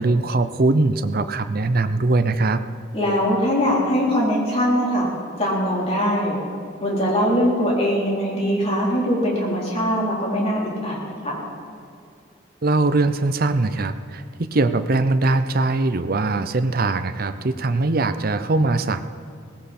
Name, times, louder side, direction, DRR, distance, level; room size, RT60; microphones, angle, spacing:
voice 1, 0.0-2.6 12.6-19.0, right 2 dB, 50° right, 10 dB, 0.7 m, -21 dB
voice 2, 2.9-5.1 5.4-6.4 6.8-11.4, equal, 30° left, -4 dB, 3.9 m, -21 dB
18.0 x 16.0 x 4.3 m, 2.5 s
head